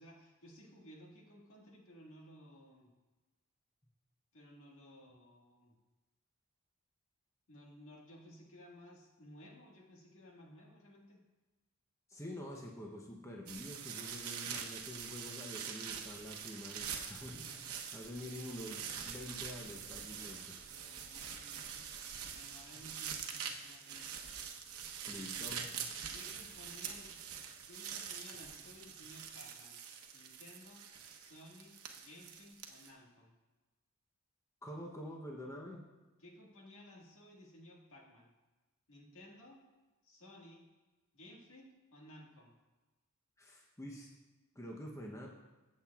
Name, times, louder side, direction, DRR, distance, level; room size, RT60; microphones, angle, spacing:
voice 1, 0.0-2.9 4.3-5.8 7.5-11.2 17.3-17.6 18.4-18.5 20.7-24.4 26.1-27.3 27.6-29.8 30.1-30.8 31.1-33.3 36.2-38.3 38.9-39.6 40.0-40.6 41.1-42.5, left 1 dB, 65° left, -2 dB, 1.7 m, -57 dB
voice 2, 12.1-17.5 17.9-20.6 25.1-25.8 34.6-35.9 43.4-44.1 44.5-45.3, left 1 dB, 15° left, -1 dB, 0.7 m, -47 dB
sound 1, 13.5-32.9, right 7 dB, 75° right, 0.9 m, -45 dB
15.0 x 7.4 x 2.3 m, 1.2 s
head